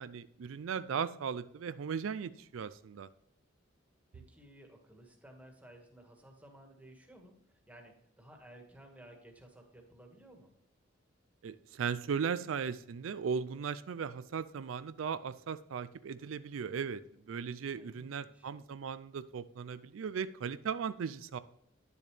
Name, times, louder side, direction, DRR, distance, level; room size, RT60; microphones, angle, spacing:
voice 1, 0.0-3.1 11.4-17.0 17.3-21.4, right 6 dB, 85° right, 13 dB, 0.4 m, -37 dB
voice 2, 4.1-10.5 17.7-18.5, right 1 dB, 10° right, 2 dB, 1.6 m, -56 dB
10.0 x 7.0 x 3.3 m, 0.74 s
head